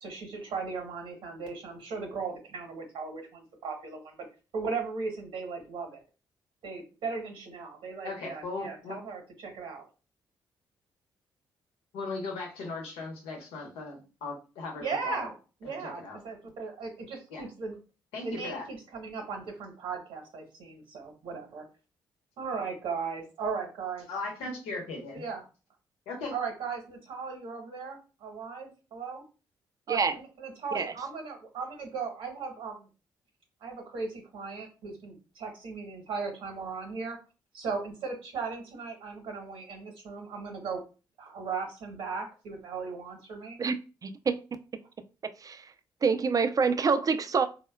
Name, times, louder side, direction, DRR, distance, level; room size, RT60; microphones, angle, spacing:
voice 1, 0.0-4.3 4.5-6.0 6.6-9.8 14.8-17.8 18.2-21.6 22.4-24.1 25.1-25.4 26.3-29.2 29.9-32.9 33.6-37.2 37.5-40.8 41.2-43.6, right 5 dB, 70° right, 0.9 m, -37 dB
voice 2, 8.0-9.0 11.9-15.3 15.6-16.2 17.3-17.4 18.1-18.6 24.1-25.2 26.1-26.3, left 3 dB, 80° left, 0.9 m, -38 dB
voice 3, 44.0-44.4 45.4-45.6 46.0-47.5, right 5 dB, 35° right, 0.4 m, -26 dB
3.5 x 2.2 x 2.2 m
hypercardioid pair, 50°, 10 cm